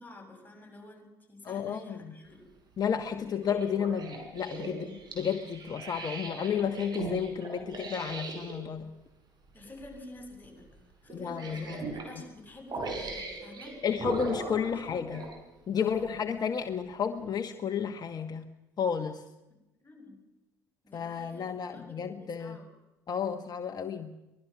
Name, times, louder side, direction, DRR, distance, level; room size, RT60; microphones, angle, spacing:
voice 1, 0.0-2.5 9.5-13.8 14.1-15.3 15.8-16.2 19.8-20.2 20.8-22.7, left 2 dB, 20° left, 3 dB, 7.2 m, -50 dB
voice 2, 1.4-2.1 2.8-8.9 11.1-12.0 13.8-15.3 15.7-18.5 18.8-19.2 20.9-22.6 23.1-24.1, left 7 dB, 40° left, 7 dB, 1.3 m, -32 dB
sound 1, 3.3-8.6 9.6-9.8 10.2-10.3 11.1-12.1 12.7-15.4 16.0-16.1, right 3 dB, 40° right, 6.1 m, -39 dB
24.0 x 20.5 x 6.0 m, 0.98 s
figure-of-eight pair, 55°, 10 cm